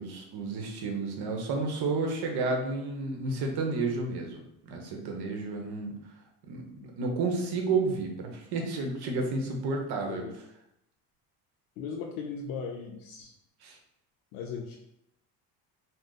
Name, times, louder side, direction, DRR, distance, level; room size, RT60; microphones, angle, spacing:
voice 1, 0.0-5.9 6.5-10.2 13.6-13.8, right 3 dB, 55° right, 2 dB, 0.8 m, -31 dB
voice 2, 11.8-13.3 14.3-14.8, left 5 dB, 70° left, 1 dB, 0.5 m, -37 dB
2.5 x 2.1 x 3.8 m, 0.83 s
supercardioid pair, 85°, 48 cm